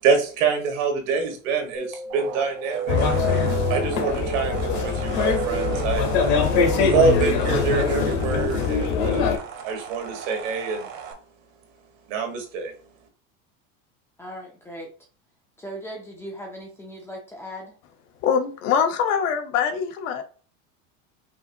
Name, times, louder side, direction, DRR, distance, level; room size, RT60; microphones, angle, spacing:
voice 1, 0.0-3.2 3.7-6.0 6.8-9.3 9.6-10.9 12.1-12.7, right 5 dB, 75° right, 3 dB, 1.6 m, -25 dB
sound 1, 1.7-9.3, right 7 dB, 25° right, 0.7 m, -32 dB
sound 2, 2.1-11.1, right 7 dB, 55° right, 1.1 m, -39 dB
sound 3, 2.9-9.4, left 6 dB, 50° left, 0.9 m, -23 dB
voice 2, 14.2-14.9 15.6-17.8, equal, 5° left, 0 dB, 0.4 m, -38 dB
voice 3, 18.2-20.2, left 7 dB, 75° left, 6 dB, 1.0 m, -23 dB
5.4 x 2.5 x 2.7 m, 0.39 s
supercardioid pair, 165°, 39 cm